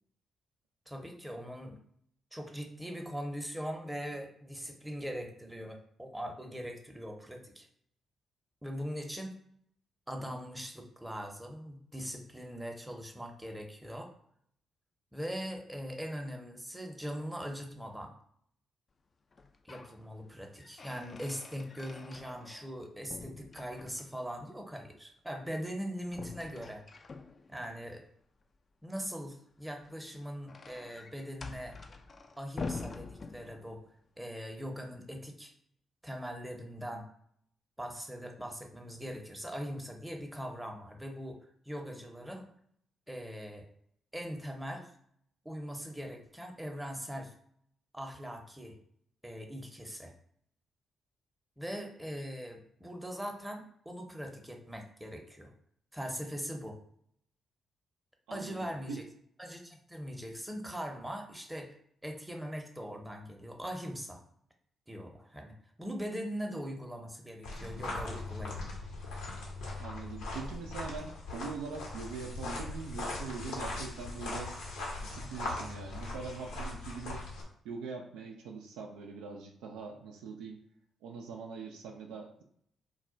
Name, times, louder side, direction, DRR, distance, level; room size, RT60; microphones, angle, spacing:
voice 1, 0.9-1.8 2.3-7.7 8.6-9.4 10.1-14.1 15.1-18.1 19.6-26.8 27.5-28.0 28.8-31.8 32.4-33.8 34.2-35.5 36.0-37.0 37.8-41.4 41.7-42.5 43.1-43.7 44.1-44.9 45.4-47.3 47.9-48.8 49.2-50.1 51.6-55.5 55.9-56.8 58.3-59.0 59.4-61.7 62.0-64.2 64.9-68.7, equal, 10° right, 3 dB, 0.7 m, -41 dB
sound 1, 19.3-20.0 20.3-22.8 23.1-24.3 26.1-27.7 29.7-33.9, left 4 dB, 45° left, 0.3 m, -45 dB
voice 2, 58.3-59.0 69.8-74.5 75.0-77.2 77.6-80.6 81.0-82.4, right 5 dB, 80° right, 2 dB, 0.4 m, -43 dB
sound 2, 67.4-77.4, left 2 dB, 80° left, 0.8 m, -40 dB
2.3 x 2.2 x 3.8 m, 0.66 s
hypercardioid pair, 45°, 0 cm